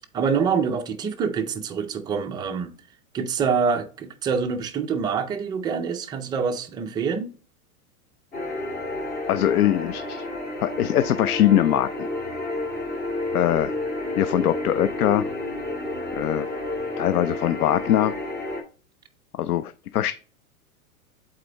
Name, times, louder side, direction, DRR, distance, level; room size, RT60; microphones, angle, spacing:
voice 1, 0.1-2.7 3.1-7.3, right 6 dB, 10° right, 0.4 m, -26 dB
sound 1, 8.3-18.6, left 2 dB, 20° left, 2.2 m, -30 dB
voice 2, 9.3-10.2 10.6-12.1 13.3-13.7 14.2-15.3 16.1-16.5 17.0-18.1 19.3-20.1, left 12 dB, 85° left, 0.6 m, -22 dB
7.9 x 4.2 x 3.3 m
hypercardioid pair, 125°, 44 cm